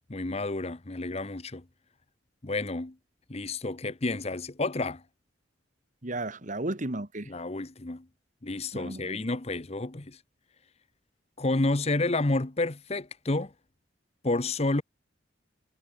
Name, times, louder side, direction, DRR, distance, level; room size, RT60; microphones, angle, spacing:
voice 1, 0.1-1.6 2.4-3.0 3.3-5.0 7.3-8.1 8.4-10.2 11.4-13.5 14.2-14.8, left 2 dB, 35° left, 1.0 m, -30 dB
voice 2, 6.0-7.3 8.7-9.2, right 2 dB, 40° right, 2.0 m, -34 dB
head